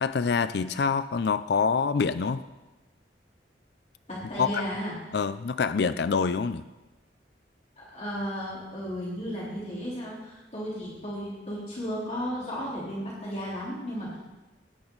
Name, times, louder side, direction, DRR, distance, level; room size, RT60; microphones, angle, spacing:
voice 1, 0.0-2.4 4.4-4.6 5.1-6.6, left 5 dB, 65° left, 13 dB, 0.4 m, -26 dB
voice 2, 4.1-5.0 7.8-14.2, equal, 40° left, -7 dB, 3.5 m, -34 dB
16.5 x 10.5 x 4.0 m, 1.1 s
head